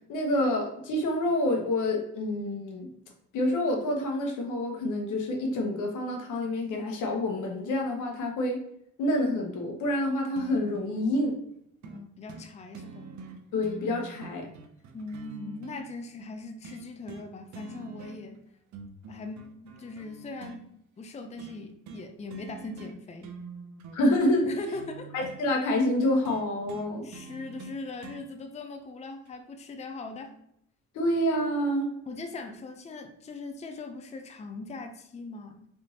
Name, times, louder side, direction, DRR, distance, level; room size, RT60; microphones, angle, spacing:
voice 1, 0.1-2.9 3.3-8.6 9.0-11.4 13.5-14.5 23.9-24.5 25.1-27.1 30.9-31.9, left 1 dB, 80° left, 3 dB, 1.0 m, -27 dB
sound 1, 10.4-11.0 11.8-12.0 12.3-12.5 12.7-15.8 16.6-17.3 17.5-18.4 18.7-20.6 21.4-21.6 21.9-22.1 22.3-23.0 23.2-25.4 26.2-28.2 29.3-29.4, right 5 dB, 70° right, 0.7 m, -45 dB
voice 2, 11.8-13.1 14.9-18.4 19.1-23.3 24.4-25.1 27.0-30.3 32.1-35.6, left 3 dB, 20° left, 5 dB, 0.5 m, -40 dB
4.1 x 3.4 x 2.8 m, 0.74 s
cardioid pair, 90°, 30 cm